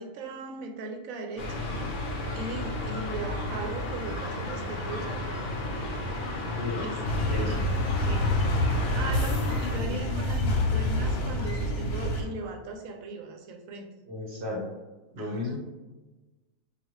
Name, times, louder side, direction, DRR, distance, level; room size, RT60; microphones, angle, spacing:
voice 1, 0.0-1.7 2.3-5.7 6.8-7.0 7.5-7.6 8.0-8.3 8.9-13.9 15.2-15.6, right 3 dB, 70° right, 3 dB, 0.9 m, -38 dB
sound 1, 1.4-9.8, left 1 dB, 60° left, 1.0 m, -33 dB
sound 2, 7.1-12.2, left 1 dB, 85° left, 1.3 m, -27 dB
voice 2, 14.1-14.6 15.1-15.6, left 2 dB, 45° right, -3 dB, 0.9 m, -34 dB
4.9 x 2.3 x 3.0 m, 1.2 s
omnidirectional pair, 1.6 m